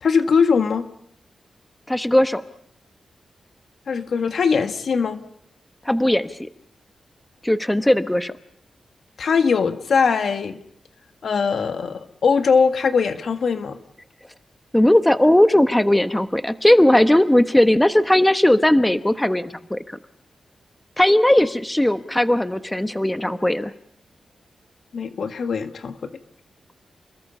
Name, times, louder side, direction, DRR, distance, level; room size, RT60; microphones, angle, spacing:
voice 1, 0.0-0.9 3.9-5.2 9.2-10.6 11.2-13.8 24.9-26.1, left 5 dB, 70° left, 8 dB, 1.7 m, -21 dB
voice 2, 1.9-2.4 5.8-6.5 7.4-8.3 14.7-20.0 21.0-23.7, left 1 dB, 10° left, 11 dB, 1.1 m, -18 dB
30.0 x 21.5 x 5.6 m, 0.72 s
cardioid pair, 80°, 0 cm